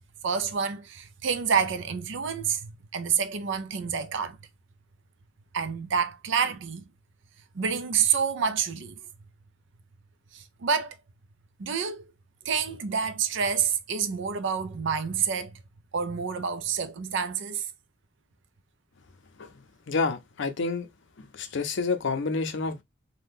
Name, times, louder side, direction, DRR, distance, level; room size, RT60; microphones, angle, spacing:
voice 1, 0.2-4.4 5.5-6.8 7.5-9.0 10.3-11.0 11.6-12.0 12.5-15.6 15.9-17.7, right 6 dB, 65° right, 0.5 m, -28 dB
voice 2, 19.9-20.9 21.2-22.8, left 4 dB, 65° left, 0.5 m, -29 dB
2.7 x 2.2 x 3.4 m
head